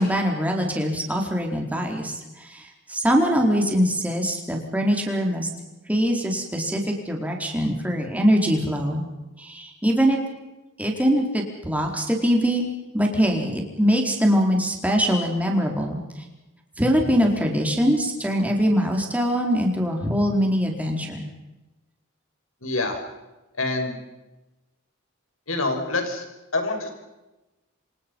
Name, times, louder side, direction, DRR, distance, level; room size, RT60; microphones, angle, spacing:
voice 1, 0.0-5.5 5.9-9.0 9.4-10.2 10.8-12.6 12.9-16.2 16.8-21.3, equal, 5° right, 1 dB, 4.5 m, -23 dB
voice 2, 22.6-23.0 23.6-24.0 25.5-26.2 26.5-26.9, left 2 dB, 80° left, 5 dB, 6.0 m, -26 dB
27.5 x 26.5 x 5.6 m, 1.0 s
head